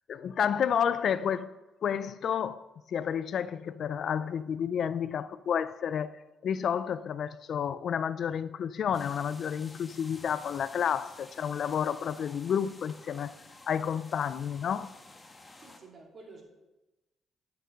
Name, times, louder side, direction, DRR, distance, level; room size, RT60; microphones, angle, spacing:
voice 1, 0.1-1.5 1.8-13.4 13.7-14.9, left 8 dB, 60° left, 0.4 m, -30 dB
sound 1, 8.9-15.8, left 2 dB, 20° left, 1.3 m, -52 dB
voice 2, 15.6-16.4, right 3 dB, 50° right, 2.9 m, -50 dB
12.0 x 6.7 x 5.2 m
cardioid pair, 90°, 0 cm